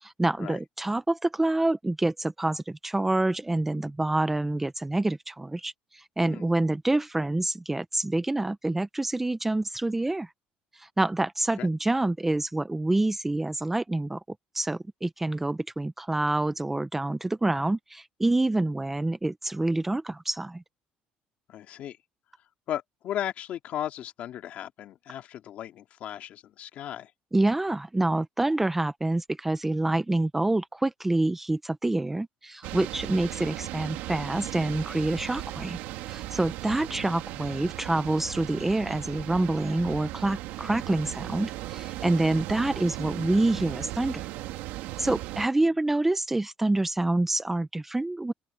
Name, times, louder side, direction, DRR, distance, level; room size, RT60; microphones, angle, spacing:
voice 1, 0.0-10.3 10.7-14.2 14.5-20.6 27.3-35.8 36.1-44.3 45.0-48.3, right 2 dB, 10° right, 0.6 m, -27 dB
voice 2, 21.5-22.0 22.7-27.1 36.9-37.0 45.6-45.7, left 11 dB, 55° left, 2.3 m, -36 dB
sound 1, 32.6-45.5, right 16 dB, 85° right, 1.8 m, -37 dB
open air
cardioid pair, 155°, 3 cm